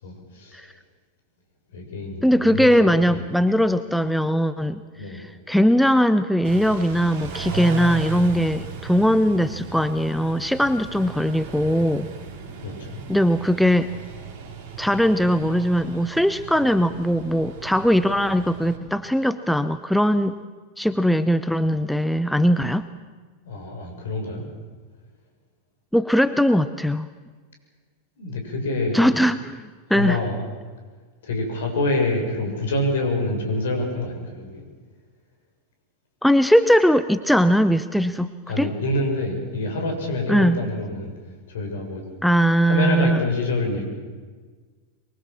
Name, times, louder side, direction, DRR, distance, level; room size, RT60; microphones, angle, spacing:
voice 1, 0.0-0.8 1.7-3.2 5.0-5.2 12.6-13.0 23.4-24.5 28.2-29.0 29.9-30.4 31.2-34.6 38.5-41.1 41.5-42.0 42.6-43.9, left 2 dB, 60° left, 3 dB, 6.4 m, -26 dB
voice 2, 2.2-4.8 5.1-12.1 13.1-13.9 14.8-20.3 20.8-22.9 25.9-27.1 28.9-30.2 36.2-38.3 38.6-38.7 40.3-40.6 42.2-43.2, equal, ahead, 12 dB, 0.7 m, -20 dB
Car / Idling / Accelerating revving vroom, 6.4-18.8, right 6 dB, 50° right, 3.1 m, -37 dB
23.5 x 23.0 x 7.3 m, 1.5 s
figure-of-eight pair, 90°, 0 cm